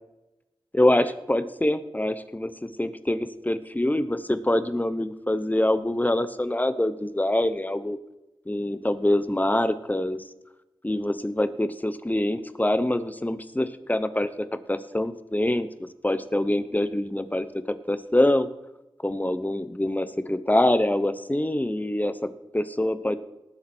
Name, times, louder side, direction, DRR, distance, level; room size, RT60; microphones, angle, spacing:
voice 1, 0.7-8.0 8.5-10.2 10.8-14.3 14.7-15.7 16.0-17.5 17.9-18.5 19.0-23.2, left 1 dB, 20° left, 12 dB, 1.0 m, -25 dB
19.0 x 7.5 x 4.5 m, 0.96 s
cardioid pair, 45°, 9 cm